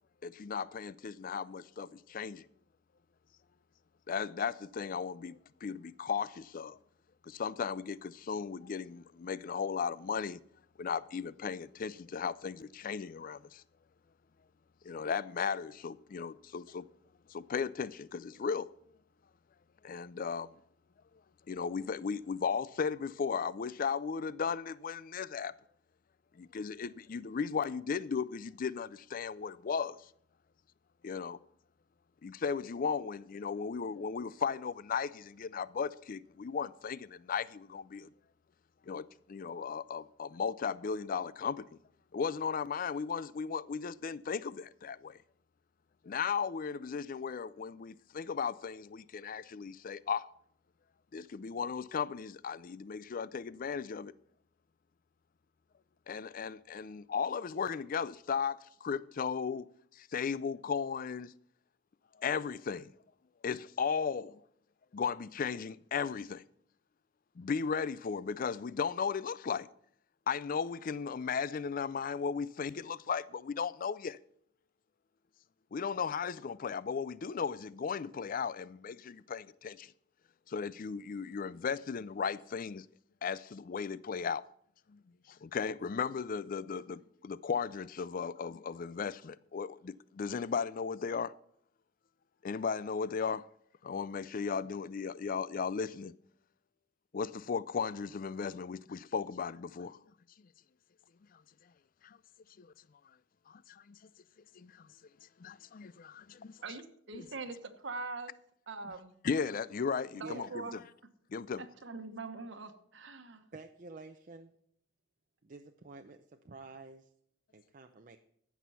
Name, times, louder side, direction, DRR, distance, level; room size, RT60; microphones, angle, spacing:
voice 1, 0.2-2.4 4.1-6.8 7.2-10.4 10.8-13.6 14.8-16.9 17.3-18.7 19.8-20.5 21.5-25.5 26.4-30.1 31.0-31.4 32.2-38.1 38.9-41.7 42.1-45.2 46.0-50.3 51.1-54.1 56.1-59.7 59.9-61.3 62.2-62.9 63.4-64.4 64.9-66.4 67.4-69.7 70.3-74.2 75.7-79.9 80.5-82.9 83.2-84.5 84.9-85.0 85.3-91.3 92.4-93.5 93.8-96.1 97.1-100.0 102.0-102.2 102.6-102.7 103.5-104.0 104.6-104.9 105.4-106.6 107.1-107.3 109.2-110.8 111.3-111.6, left 6 dB, 45° left, 0.4 m, -36 dB
voice 2, 106.6-108.3 108.7-109.1 110.2-110.8 111.6-113.5, right 3 dB, 70° right, 1.2 m, -43 dB
voice 3, 110.2-110.5 113.5-114.5 115.4-117.1 117.5-118.2, right 3 dB, 45° right, 0.6 m, -49 dB
15.5 x 6.1 x 5.6 m
head